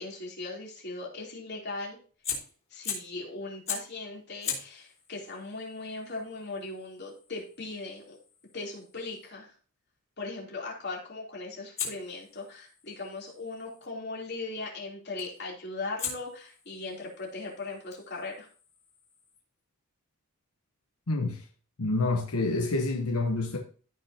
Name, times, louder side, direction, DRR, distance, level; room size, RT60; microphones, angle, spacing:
voice 1, 0.0-2.0 2.7-8.2 8.5-9.5 10.2-18.5, left 3 dB, 50° left, 3.3 m, -39 dB
Fire, 2.2-3.2 3.7-4.0 4.4-9.3 11.8-13.9 15.2-15.5 16.0-19.4, left 6 dB, 30° left, 3.7 m, -41 dB
voice 2, 21.1-21.4 21.8-23.6, left 2 dB, 85° left, 1.0 m, -28 dB
15.0 x 5.9 x 2.8 m
head